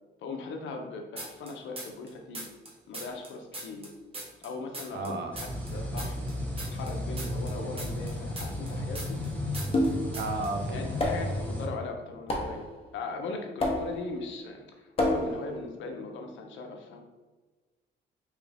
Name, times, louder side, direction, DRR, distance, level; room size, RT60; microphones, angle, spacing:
voice 1, 0.2-2.4 2.9-3.9 4.4-6.2 6.7-9.2 10.7-12.6 12.9-17.0, left 3 dB, 75° left, 3 dB, 0.6 m, -39 dB
sound 1, 1.2-2.1 2.3-5.1 5.4-9.3 9.5-9.9 10.1-10.5, right 2 dB, 30° right, 0.9 m, -40 dB
voice 2, 4.9-5.3 10.1-10.8, right 3 dB, 60° right, 4 dB, 0.6 m, -33 dB
sound 2, 5.3-11.7, left 1 dB, 5° left, 1.0 m, -34 dB
sound 3, 9.7-10.2 11.0-11.4 12.3-12.7 13.6-14.1 15.0-15.5, left 1 dB, 30° left, 0.7 m, -28 dB
3.1 x 2.4 x 3.3 m, 1.3 s
cardioid pair, 90°, 20 cm